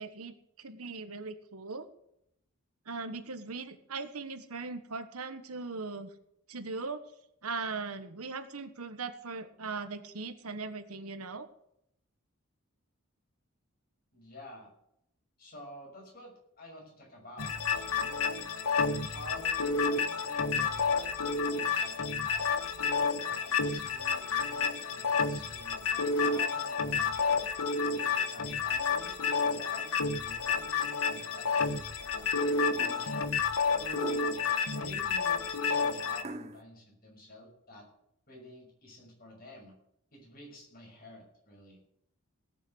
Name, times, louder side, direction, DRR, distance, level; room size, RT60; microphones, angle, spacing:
voice 1, 0.0-1.9 2.9-6.1 6.5-7.0 7.4-11.5, right 4 dB, 85° right, 10 dB, 1.3 m, -39 dB
voice 2, 14.1-14.7 15.4-18.3 19.0-19.7 20.2-21.2 21.5-22.6 23.1-27.5 28.0-29.1 29.4-33.3 33.8-34.0 34.7-37.9 38.3-39.8 40.1-41.8, equal, 40° left, 0 dB, 6.0 m, -50 dB
sound 1, 17.4-36.2, left 5 dB, 75° left, 1.2 m, -30 dB
sound 2, 32.8-33.2 33.9-34.5 36.2-36.6, right 2 dB, 30° right, 0.8 m, -42 dB
17.5 x 7.5 x 8.0 m, 0.76 s
head